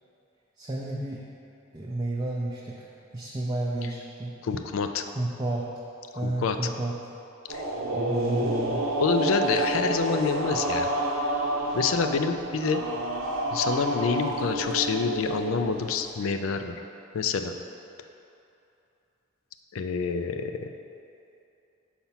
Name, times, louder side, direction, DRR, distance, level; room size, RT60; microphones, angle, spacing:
voice 1, 0.6-1.2 1.7-2.9 3.1-4.3 5.1-5.7 6.1-7.0 7.9-8.8, right 2 dB, 20° right, -5 dB, 0.5 m, -31 dB
voice 2, 4.4-5.0 6.2-6.6 7.5-7.6 9.0-10.9 11.7-12.8 13.5-16.8 17.1-17.5 19.7-20.7, left 5 dB, 85° left, 7 dB, 0.4 m, -27 dB
sound 1, 7.5-16.1, right 1 dB, 85° right, 0.7 m, -29 dB
5.7 x 4.2 x 5.7 m, 2.7 s
head